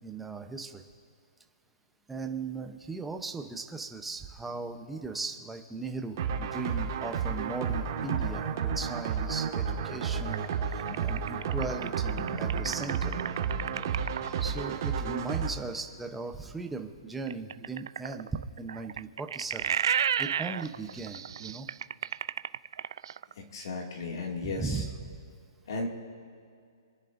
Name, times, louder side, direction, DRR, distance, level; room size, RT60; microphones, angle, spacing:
voice 1, 0.0-0.8 2.1-13.1 14.4-19.8 20.2-21.7 24.4-25.2, right 3 dB, 5° right, 4 dB, 0.8 m, -38 dB
sound 1, 6.2-15.5, right 6 dB, 45° right, 1.8 m, -31 dB
sound 2, 10.3-14.4 17.3-23.3, right 8 dB, 60° right, 0.3 m, -32 dB
voice 2, 23.4-24.8 25.7-25.9, left 3 dB, 60° left, 0 dB, 2.3 m, -35 dB
27.5 x 10.5 x 2.6 m, 2.3 s
hypercardioid pair, 160°, 3 cm